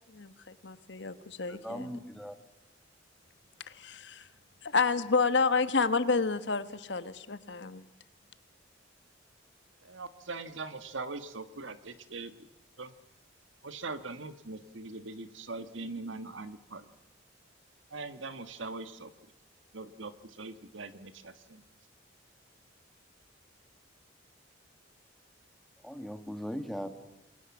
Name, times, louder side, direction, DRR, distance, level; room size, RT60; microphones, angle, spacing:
voice 1, 0.1-1.9 3.7-4.3 4.6-7.8, left 4 dB, 60° left, 12 dB, 1.2 m, -30 dB
voice 2, 1.5-2.4 25.8-26.9, equal, ahead, 7 dB, 1.7 m, -39 dB
voice 3, 9.8-12.5 12.8-12.9 13.6-16.9 17.9-19.3 19.7-21.6, right 3 dB, 75° right, 11 dB, 1.5 m, -41 dB
28.0 x 22.5 x 7.2 m, 0.94 s
head